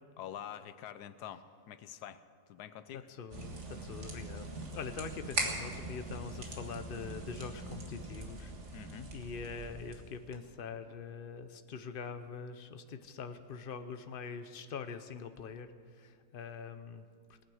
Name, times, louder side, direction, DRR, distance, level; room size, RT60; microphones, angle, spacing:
voice 1, 0.2-2.2 2.5-3.1 8.7-9.1, left 10 dB, 80° left, 12 dB, 1.2 m, -46 dB
voice 2, 2.9-8.5 9.1-17.4, left 5 dB, 45° left, 9 dB, 0.7 m, -44 dB
sound 1, 3.3-10.3, right 2 dB, 45° right, 1.9 m, -41 dB
20.0 x 9.1 x 6.4 m, 2.1 s
omnidirectional pair, 1.7 m